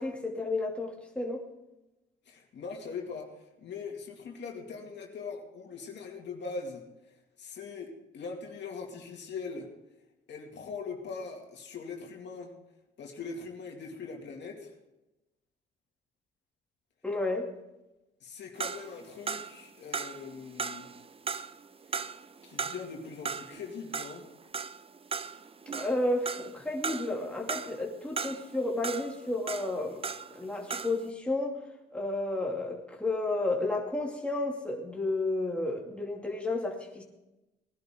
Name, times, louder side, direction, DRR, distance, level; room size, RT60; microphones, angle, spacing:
voice 1, 0.0-1.4 17.0-17.5 25.7-30.0 30.3-31.6 31.9-37.0, left 2 dB, 5° left, -1 dB, 2.5 m, -32 dB
voice 2, 2.3-9.7 10.3-12.6 13.0-14.7 18.2-20.9 21.9-22.0 22.4-24.3, left 4 dB, 60° left, 1 dB, 2.4 m, -41 dB
sound 1, 18.6-30.4 30.7-31.1, right 5 dB, 30° right, 0.6 m, -37 dB
19.5 x 11.0 x 3.8 m, 0.99 s
cardioid pair, 90°, 20 cm